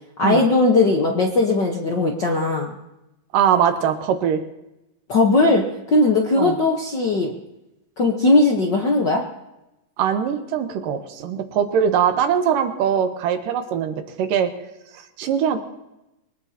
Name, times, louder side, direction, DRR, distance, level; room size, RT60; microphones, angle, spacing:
voice 1, 0.2-2.8 5.1-5.6 5.9-7.3 8.0-9.2, left 2 dB, 60° left, 1 dB, 1.1 m, -18 dB
voice 2, 3.3-4.4 6.4-6.6 10.0-14.5 14.9-15.6, right 8 dB, 85° right, 7 dB, 2.7 m, -21 dB
23.0 x 19.5 x 2.9 m, 0.94 s
omnidirectional pair, 3.8 m